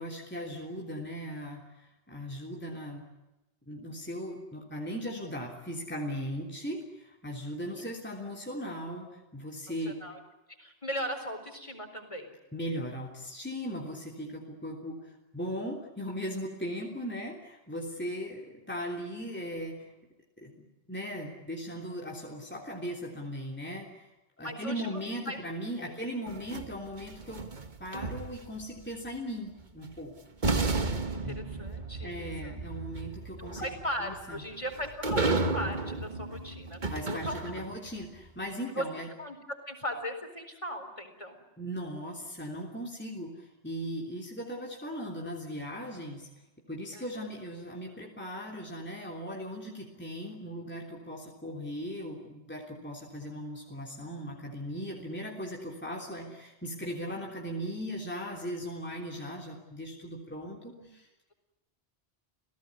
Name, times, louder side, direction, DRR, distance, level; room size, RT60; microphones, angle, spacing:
voice 1, 0.0-3.0 3.7-10.0 12.5-19.9 20.4-20.5 20.9-24.1 24.4-27.4 27.8-30.1 31.2-31.4 32.0-33.7 34.0-34.4 36.9-39.1 41.6-46.3 46.7-61.1, equal, 10° left, -1 dB, 3.3 m, -38 dB
voice 2, 9.9-10.2 10.5-12.4 24.4-25.0 25.3-25.4 25.8-25.9 31.1-32.5 33.4-36.8 37.1-37.4 38.7-38.9 39.2-41.4 46.9-47.2 60.8-60.9, equal, 30° left, 5 dB, 4.4 m, -38 dB
sound 1, 26.3-28.6 29.9-30.0 30.4-37.9, right 3 dB, 45° right, 1.6 m, -33 dB
29.5 x 17.0 x 9.7 m, 1.0 s
omnidirectional pair, 1.1 m